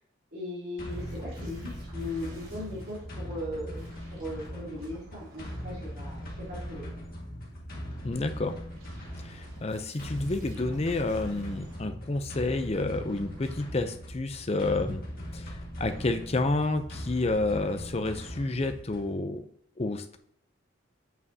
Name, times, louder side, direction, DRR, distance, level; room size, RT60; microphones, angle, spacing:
voice 1, 0.3-6.8, left 1 dB, 50° right, -8 dB, 2.9 m, -38 dB
sound 1, 0.8-19.2, equal, 45° left, 1.8 m, -40 dB
sound 2, 0.9-3.1 3.7-7.1 8.4-11.8 12.7-13.5, right 2 dB, 90° right, 3.0 m, -56 dB
voice 2, 8.0-8.5 9.2-15.0 15.3-19.5 19.8-20.2, left 2 dB, 30° left, 9 dB, 0.5 m, -30 dB
8.1 x 7.3 x 2.8 m, 0.70 s
head